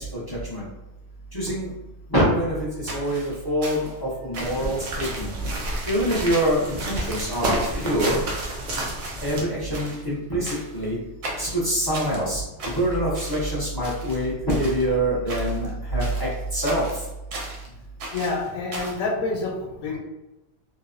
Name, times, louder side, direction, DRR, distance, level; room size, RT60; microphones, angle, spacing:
voice 1, 0.1-0.7 1.3-1.7 2.1-5.3 5.9-8.2 9.2-11.0 11.4-12.4 12.7-16.9, right 1 dB, 30° left, -7 dB, 0.4 m, -25 dB
sound 1, 2.9-4.0 4.3-4.7 5.0-5.3 5.6-6.0 6.3-6.6 7.0-7.2 7.6-8.7 9.0-9.5 9.7-10.0 10.4-10.8 11.2-12.2 12.6-13.5 13.8-14.9 15.3-15.7 16.0-17.7 18.0-19.0, right 2 dB, 75° right, 1.0 m, -37 dB
sound 2, 4.4-9.4, right 1 dB, 55° right, 0.6 m, -30 dB
voice 2, 18.1-19.5 19.8-20.0, left 3 dB, 85° left, -1 dB, 1.0 m, -27 dB
2.8 x 2.0 x 2.4 m, 0.98 s
omnidirectional pair, 1.3 m